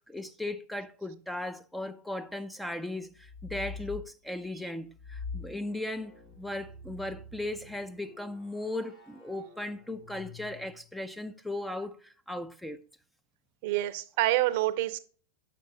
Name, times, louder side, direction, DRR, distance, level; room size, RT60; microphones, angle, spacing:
voice 1, 0.1-12.9, left 1 dB, 5° left, 0.5 m, -37 dB
sound 1, 3.2-4.1 5.0-11.0, left 4 dB, 50° left, 3.6 m, -46 dB
voice 2, 13.6-15.0, right 16 dB, 60° right, 0.6 m, -27 dB
8.3 x 5.8 x 2.7 m
hypercardioid pair, 100°, 0 cm